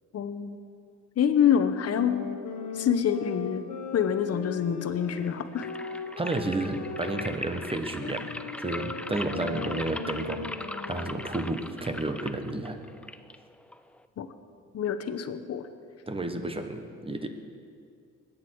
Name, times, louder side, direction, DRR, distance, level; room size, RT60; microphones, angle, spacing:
voice 1, 0.1-0.6 1.2-2.2 2.8-3.6 3.9-5.7 14.2-14.3 14.7-15.6, left 8 dB, 55° left, 10 dB, 0.9 m, -26 dB
sound 1, 1.8-11.5, left 6 dB, 85° left, 1.4 m, -39 dB
sound 2, 5.0-14.1, left 1 dB, 5° left, 0.4 m, -40 dB
voice 2, 6.2-8.3 8.6-10.5 10.9-12.8 16.1-17.3, right 2 dB, 20° right, 7 dB, 1.3 m, -31 dB
20.5 x 9.0 x 4.7 m, 2.3 s
cardioid pair, 90°, 30 cm